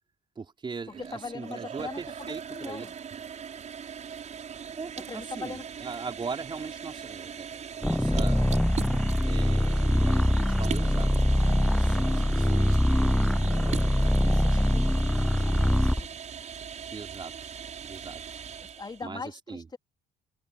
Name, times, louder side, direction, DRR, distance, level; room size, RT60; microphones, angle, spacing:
voice 1, 0.4-2.9 4.8-8.4 9.2-14.6 16.9-17.6 17.8-18.4 19.0-19.7, right 5 dB, 30° right, 4.1 m, -41 dB
sound 1, 0.9-19.0, right 7 dB, 45° right, 6.9 m, -40 dB
voice 2, 1.0-2.9 5.0-5.6 14.3-16.2 18.6-19.8, left 4 dB, 25° left, 3.9 m, -41 dB
sound 2, 7.8-16.1, left 1 dB, ahead, 0.6 m, -23 dB
cardioid pair, 110°, 17 cm